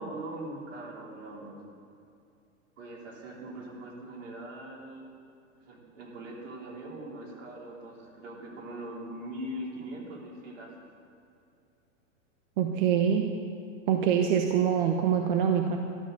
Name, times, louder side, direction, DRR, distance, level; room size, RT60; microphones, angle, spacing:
voice 1, 0.0-1.6 2.8-5.1 5.6-10.7, right 1 dB, 70° right, -3 dB, 4.1 m, -41 dB
voice 2, 12.6-13.3 13.9-15.8, right 8 dB, 40° right, 4 dB, 1.0 m, -25 dB
13.0 x 12.5 x 6.8 m, 2.5 s
supercardioid pair, 165°, 39 cm